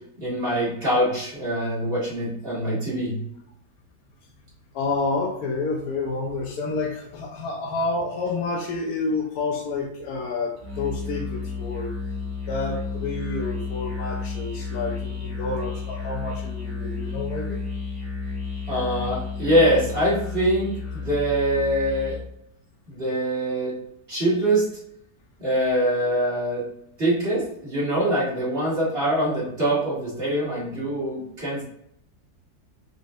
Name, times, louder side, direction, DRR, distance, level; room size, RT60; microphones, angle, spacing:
voice 1, 0.2-3.2 18.7-22.2 22.9-23.7 24.1-24.7 25.4-26.6 27.0-31.6, right 1 dB, 35° right, -8 dB, 2.1 m, -24 dB
voice 2, 4.7-12.0 12.4-17.6, left 3 dB, 70° left, -1 dB, 1.1 m, -29 dB
Musical instrument, 10.6-22.3, left 4 dB, 55° right, 2.0 m, -32 dB
5.3 x 3.8 x 2.5 m, 0.74 s
omnidirectional pair, 1.7 m